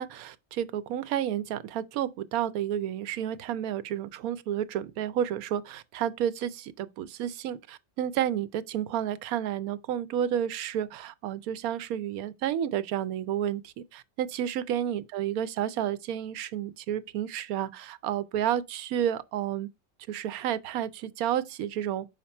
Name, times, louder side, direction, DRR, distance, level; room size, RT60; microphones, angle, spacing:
voice 1, 0.0-19.7 20.1-22.1, right 10 dB, 80° right, 1.0 m, -31 dB
5.8 x 4.6 x 4.2 m
omnidirectional pair, 1.5 m